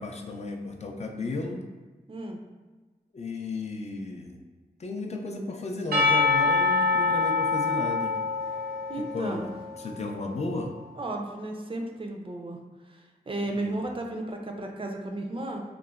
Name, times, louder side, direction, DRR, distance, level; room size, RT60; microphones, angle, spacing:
voice 1, 0.0-1.6 3.1-4.4 4.8-8.5 9.0-9.5 9.8-10.7 13.5-13.8, left 3 dB, 45° left, 3 dB, 0.4 m, -34 dB
voice 2, 2.1-2.4 8.9-9.5 11.0-15.6, right 2 dB, 35° right, 2 dB, 0.4 m, -34 dB
Percussion / Church bell, 5.9-10.3, left 3 dB, 80° right, 0.7 m, -25 dB
2.9 x 2.0 x 2.3 m, 1.3 s
cardioid pair, 40°, 16 cm